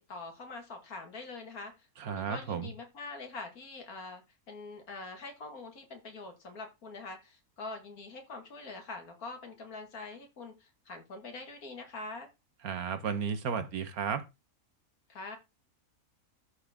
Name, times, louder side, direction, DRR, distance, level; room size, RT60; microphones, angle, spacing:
voice 1, 0.1-12.3 15.1-15.4, left 3 dB, 75° left, 2.2 m, -44 dB
voice 2, 2.0-2.7 12.6-14.2, right 6 dB, 75° right, 1.6 m, -33 dB
13.0 x 4.3 x 3.6 m
omnidirectional pair, 1.6 m